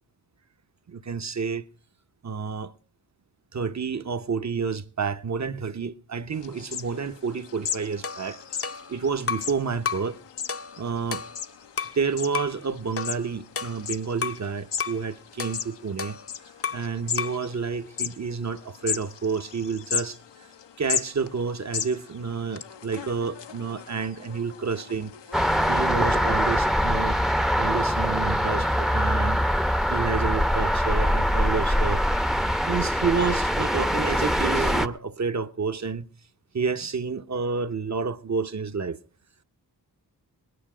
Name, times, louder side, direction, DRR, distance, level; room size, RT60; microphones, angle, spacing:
voice 1, 0.9-1.7 2.2-2.7 3.5-8.4 8.9-10.2 10.8-11.2 11.9-16.2 16.7-20.5 20.8-25.2 25.7-27.2 27.6-29.4 29.9-32.0 32.7-36.1 36.5-39.0, right 5 dB, 40° right, 1.0 m, -29 dB
sound 1, 6.3-25.9, left 8 dB, 80° left, 0.9 m, -37 dB
sound 2, 8.0-9.6 9.9-10.1 10.5-12.0 12.3-12.6 13.0-14.5 14.8-15.0 15.4-16.9 17.2-17.5, left 6 dB, 35° left, 0.7 m, -33 dB
sound 3, 25.3-34.9, equal, ahead, 0.7 m, -23 dB
19.5 x 9.9 x 5.0 m
cardioid pair, 40°, 42 cm